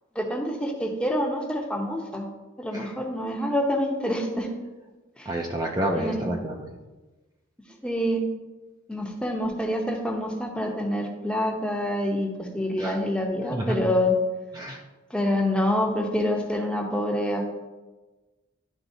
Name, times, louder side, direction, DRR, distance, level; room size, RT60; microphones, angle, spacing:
voice 1, 0.1-2.3 2.6-4.5 5.2-5.3 5.9-6.3 7.8-8.2 8.9-14.1 15.1-17.5, left 1 dB, 5° left, 1 dB, 0.7 m, -26 dB
voice 2, 5.3-6.7 12.8-13.0 13.5-13.8 14.5-14.8, right 1 dB, 20° right, 0 dB, 0.4 m, -29 dB
11.0 x 3.9 x 2.7 m, 1.2 s
head